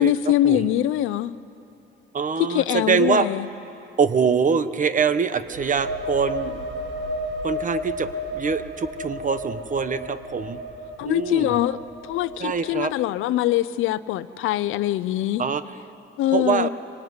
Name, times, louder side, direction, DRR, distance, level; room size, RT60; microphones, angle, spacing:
voice 1, 0.0-1.3 2.5-3.5 11.0-11.8 12.0-15.4 16.2-16.7, left 13 dB, 90° left, 0.6 m, -23 dB
voice 2, 2.1-3.3 4.0-6.6 7.4-10.6 11.0-11.5 12.4-12.9 15.4-15.6 16.3-16.7, right 6 dB, 40° right, 1.2 m, -24 dB
sound 1, 5.4-13.0, left 1 dB, 65° right, 2.2 m, -33 dB
24.5 x 20.0 x 9.6 m
cardioid pair, 90°, 20 cm